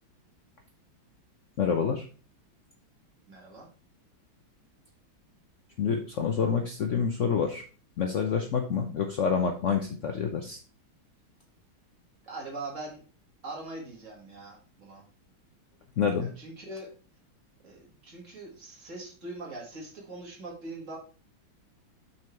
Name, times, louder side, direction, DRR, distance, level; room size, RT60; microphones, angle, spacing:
voice 1, 1.6-2.1 5.8-7.6 8.0-10.6 16.0-16.3, left 6 dB, 85° left, 4 dB, 0.6 m, -27 dB
voice 2, 3.3-3.7 12.2-13.0 13.4-15.1 16.2-16.9 17.6-21.0, right 2 dB, 40° right, -1 dB, 2.0 m, -42 dB
6.1 x 4.5 x 4.4 m, 0.38 s
omnidirectional pair, 2.2 m